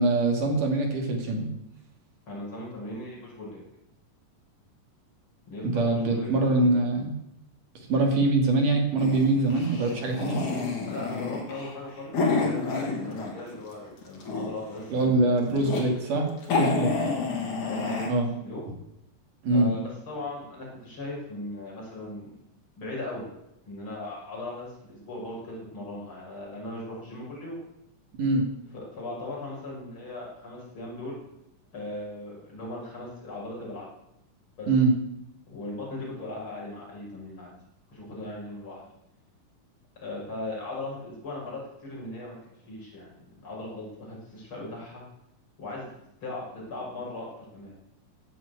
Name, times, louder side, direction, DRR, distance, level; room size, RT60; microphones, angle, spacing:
voice 1, 0.0-1.5 5.7-7.2 7.9-10.5 14.9-16.3 16.6-16.9 18.1-18.3 19.4-19.7 28.2-28.5 34.7-35.0, right 2 dB, 70° right, 2 dB, 4.1 m, -23 dB
voice 2, 2.3-3.6 5.5-6.7 10.9-15.8 17.0-17.2 17.6-18.7 19.5-22.3 22.7-23.3 23.7-27.6 28.7-31.2 31.7-33.9 34.6-34.7 35.5-37.5 37.9-38.8 40.0-42.4 42.7-45.0 45.6-45.9 46.2-47.8, left 2 dB, 35° left, -4 dB, 7.0 m, -38 dB
sound 1, 9.0-13.6 13.9-14.7 15.3-15.8 16.2-16.3 16.4-18.1, left 4 dB, 60° left, 4.2 m, -29 dB
16.0 x 8.1 x 8.1 m, 0.82 s
omnidirectional pair, 3.9 m